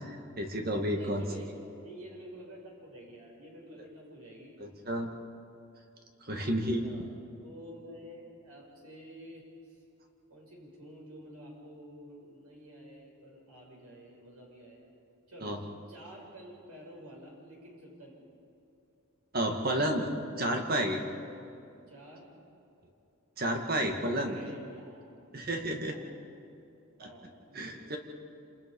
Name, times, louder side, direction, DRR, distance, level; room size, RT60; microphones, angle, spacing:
voice 1, 0.0-1.2 4.6-5.1 6.2-6.9 15.4-15.6 19.3-20.1 20.4-21.0 23.4-24.4 25.3-26.0 27.0-27.1 27.5-28.0, right 1 dB, 40° right, 3 dB, 2.2 m, -31 dB
voice 2, 0.9-4.5 6.8-7.1 7.4-9.5 10.3-14.9 15.3-15.6 15.9-18.3 21.9-22.3 24.1-25.2 25.7-26.0 27.0-27.8, equal, 85° right, -2 dB, 7.2 m, -49 dB
28.0 x 28.0 x 5.6 m, 2.7 s
head